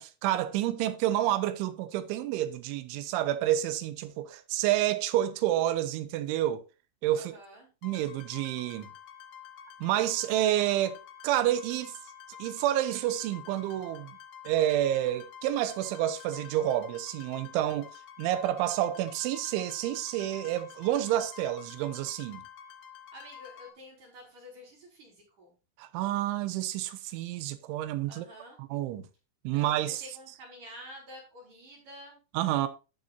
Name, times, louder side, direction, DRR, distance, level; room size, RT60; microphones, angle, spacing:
voice 1, 0.0-6.6 7.0-7.3 7.8-8.9 9.8-12.0 12.4-14.1 14.4-17.9 18.2-22.4 25.8-28.3 28.6-29.1 29.4-30.0 32.3-32.7, right 13 dB, 80° right, 3.3 m, -29 dB
voice 2, 7.1-7.7 23.1-25.5 28.1-28.6 29.5-32.2, equal, 40° right, 5.5 m, -49 dB
sound 1, 7.8-23.7, left 8 dB, 75° left, 1.7 m, -49 dB
12.0 x 7.5 x 2.6 m
omnidirectional pair, 5.6 m